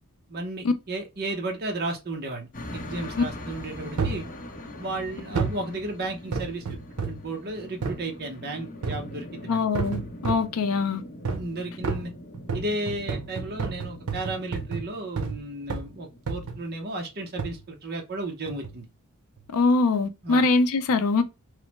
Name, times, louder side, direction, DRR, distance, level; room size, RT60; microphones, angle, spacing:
voice 1, 0.3-4.3 4.8-6.8 7.0-9.6 11.3-12.1 12.5-18.8 20.2-20.4, right 2 dB, 45° right, 0.7 m, -34 dB
sound 1, 2.5-16.8, left 1 dB, 40° left, 0.7 m, -42 dB
sound 2, 4.0-4.3 5.3-5.7 6.3-7.3 7.8-8.0 8.8-9.2 9.7-10.5 11.2-11.5 11.8-15.4 15.7-15.9 16.3-16.7 17.4-17.6 18.5-18.8 19.4-19.5, right 4 dB, 85° right, 0.6 m, -31 dB
voice 2, 9.5-11.0 19.5-21.2, left 3 dB, 75° left, 0.4 m, -23 dB
3.1 x 2.0 x 2.9 m
head